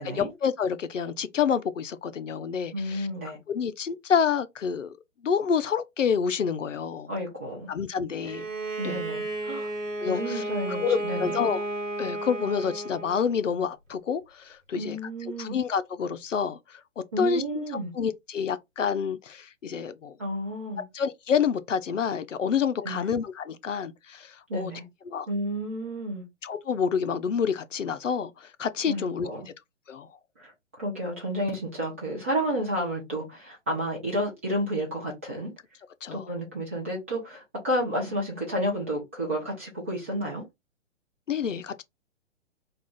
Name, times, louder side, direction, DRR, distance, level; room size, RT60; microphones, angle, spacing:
voice 1, 0.1-3.1 3.5-5.0 5.2-7.1 7.7-8.5 8.8-9.0 10.0-10.4 10.7-11.6 12.0-15.0 15.4-17.6 17.9-20.2 20.9-24.7 25.1-25.3 26.4-29.3 29.9-30.1 36.0-36.3 41.3-41.8, left 7 dB, 75° left, 0.5 m, -28 dB
voice 2, 2.7-3.4 7.1-7.7 8.8-9.7 10.1-11.5 14.7-15.6 17.1-17.9 20.2-20.8 22.8-23.1 24.5-24.8 25.3-26.2 28.9-29.5 30.4-30.5 30.8-35.5 36.1-40.4, equal, 10° right, 0.4 m, -31 dB
Bowed string instrument, 8.2-13.4, right 1 dB, 80° right, 1.0 m, -33 dB
2.4 x 2.4 x 3.6 m
figure-of-eight pair, 125°, 38 cm